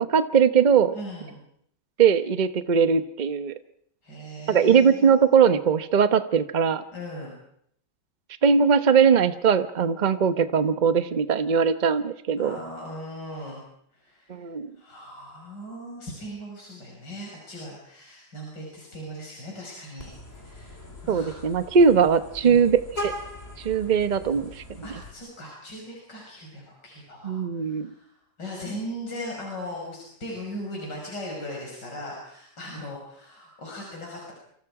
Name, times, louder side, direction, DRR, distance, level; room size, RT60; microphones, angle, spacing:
voice 1, 0.0-0.9 2.0-3.5 4.5-6.8 8.4-12.6 14.3-14.7 21.1-23.1 23.6-24.9 27.2-27.9, right 6 dB, 35° right, 11 dB, 0.8 m, -20 dB
voice 2, 0.9-1.4 4.0-5.3 6.9-7.3 12.4-13.6 13.9-14.5 14.8-21.4 22.4-22.6 24.8-28.1 28.4-34.3, equal, 70° left, -2 dB, 6.4 m, -39 dB
Vehicle horn car horn honking, 20.0-25.1, left 2 dB, 35° left, 3.9 m, -40 dB
28.0 x 26.0 x 4.9 m, 0.69 s
omnidirectional pair, 1.9 m